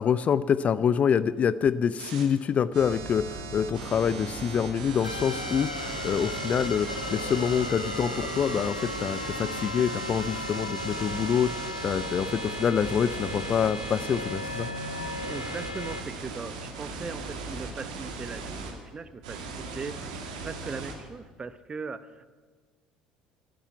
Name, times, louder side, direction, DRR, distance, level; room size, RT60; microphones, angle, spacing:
voice 1, 0.0-14.7, left 7 dB, 35° left, 17 dB, 0.4 m, -26 dB
sound 1, 2.0-2.2 2.7-18.7 19.2-20.9, right 4 dB, 70° right, 1.9 m, -38 dB
sound 2, 5.0-16.0, left 2 dB, 90° left, 0.9 m, -36 dB
voice 2, 15.3-22.3, right 4 dB, 25° right, 14 dB, 0.8 m, -39 dB
11.5 x 10.0 x 9.3 m, 1.5 s
figure-of-eight pair, 60°, 4 cm